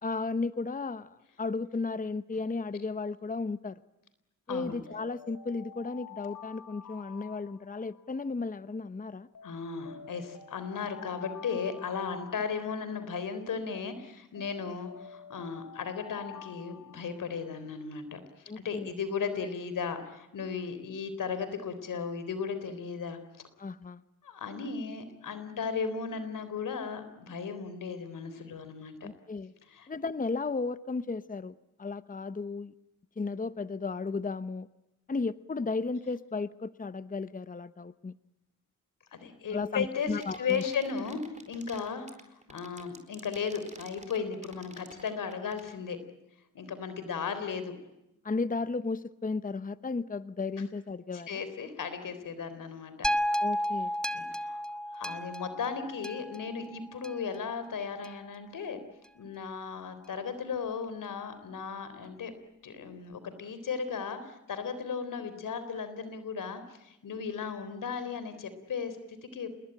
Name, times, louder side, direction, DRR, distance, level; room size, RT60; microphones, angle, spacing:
voice 1, 0.0-3.8 4.5-9.3 18.5-18.9 23.6-24.0 29.0-29.5 29.9-32.7 33.2-34.7 35.1-38.1 39.5-40.6 48.2-51.4 53.4-53.9, left 4 dB, 25° left, 14 dB, 0.9 m, -34 dB
voice 2, 4.5-4.8 9.4-18.2 18.6-23.2 24.2-29.1 29.7-29.9 39.1-42.1 42.5-46.0 46.5-47.7 51.1-53.1 54.1-54.6 54.9-58.8 59.2-62.3 62.6-69.5, left 6 dB, 85° left, 11 dB, 3.8 m, -36 dB
Alarm, 4.9-8.2 9.3-13.2 14.3-17.6, left 8 dB, 65° left, 3.7 m, -49 dB
sound 1, 40.1-45.8, right 2 dB, 20° right, 4.5 m, -49 dB
sound 2, 53.0-57.4 58.0-58.1, equal, ahead, 1.2 m, -33 dB
28.0 x 21.0 x 9.0 m, 0.92 s
cardioid pair, 65°, 31 cm